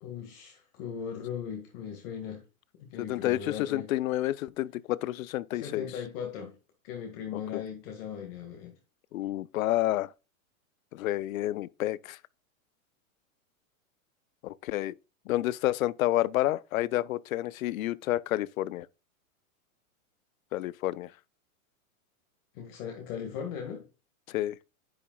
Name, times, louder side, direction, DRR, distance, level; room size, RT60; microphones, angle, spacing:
voice 1, 0.0-2.4 2.8-3.9 5.5-6.5 6.8-8.7 22.5-23.9, left 7 dB, 40° left, 1.8 m, -38 dB
voice 2, 3.0-5.9 7.3-7.6 9.1-10.1 10.9-12.2 14.4-14.9 15.3-18.9 20.5-21.1 24.3-24.6, left 15 dB, 75° left, 0.6 m, -29 dB
10.0 x 6.9 x 2.3 m
supercardioid pair, 155°, 42 cm